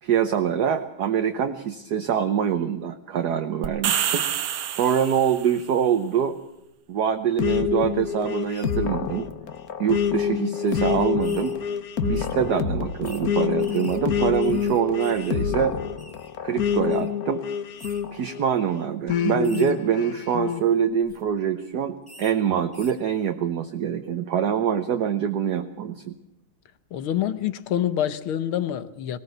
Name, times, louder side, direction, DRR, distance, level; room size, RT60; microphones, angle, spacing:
voice 1, 0.0-4.2 4.7-6.4 6.9-9.3 9.8-11.6 12.0-15.8 16.4-17.4 18.1-26.1, right 8 dB, 60° right, 7 dB, 1.3 m, -24 dB
sound 1, 3.6-5.6, right 10 dB, 85° right, 2.0 m, -27 dB
sound 2, 7.4-18.5 19.1-20.6, left 8 dB, 50° left, 1.3 m, -27 dB
sound 3, 8.5-8.8 9.6-9.7 10.0-10.1 10.7-10.8 11.2-11.6 12.1-12.3 13.0-13.2 13.6-15.5 15.7-16.3 16.9-17.1 17.8-18.0 18.6-18.8 19.4-19.7 20.9-21.2 22.1-22.3 22.7-23.0, left 1 dB, 10° left, 2.1 m, -46 dB
voice 2, 26.9-29.2, left 11 dB, 80° left, 13 dB, 1.8 m, -26 dB
19.5 x 18.5 x 7.9 m, 0.85 s
omnidirectional pair, 2.3 m